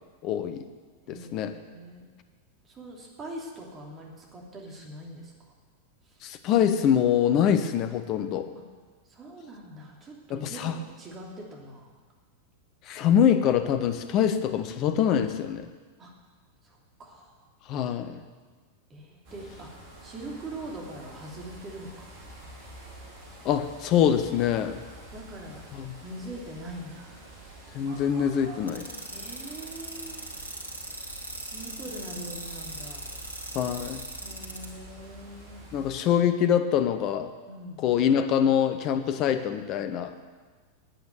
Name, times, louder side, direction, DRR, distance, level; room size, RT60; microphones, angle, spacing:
voice 1, 0.2-0.7 1.1-1.5 6.2-8.5 10.3-10.8 12.9-15.7 17.7-18.2 23.4-24.8 25.8-25.9 27.7-28.9 33.5-34.0 35.7-37.3 37.8-40.1, left 9 dB, 40° left, 10 dB, 0.9 m, -24 dB
voice 2, 1.0-2.1 2.6-5.5 6.0-6.2 8.5-8.6 9.1-11.9 16.0-16.1 16.6-17.4 18.9-19.7 20.0-22.1 25.1-25.6 26.0-27.1 29.1-30.3 31.4-33.2 34.2-35.6 37.5-37.9, right 1 dB, 25° right, -2 dB, 3.0 m, -42 dB
sound 1, 19.2-36.0, right 1 dB, 45° right, 3.9 m, -47 dB
sound 2, 28.7-34.7, right 1 dB, 90° left, 2.1 m, -38 dB
9.3 x 9.0 x 9.3 m, 1.4 s
figure-of-eight pair, 90°, 0 cm